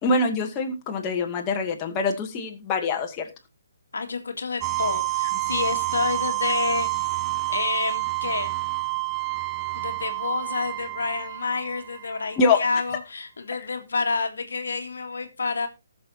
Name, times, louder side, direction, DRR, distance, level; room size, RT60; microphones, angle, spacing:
voice 1, 0.0-3.3 12.4-12.6, left 3 dB, 25° left, 2.3 m, -24 dB
voice 2, 3.9-7.2 7.5-8.6 9.8-15.7, left 4 dB, 70° left, 1.9 m, -29 dB
sound 1, 4.6-12.4, right 23 dB, 20° right, 0.5 m, -28 dB
19.0 x 6.9 x 2.8 m
figure-of-eight pair, 140°, 0 cm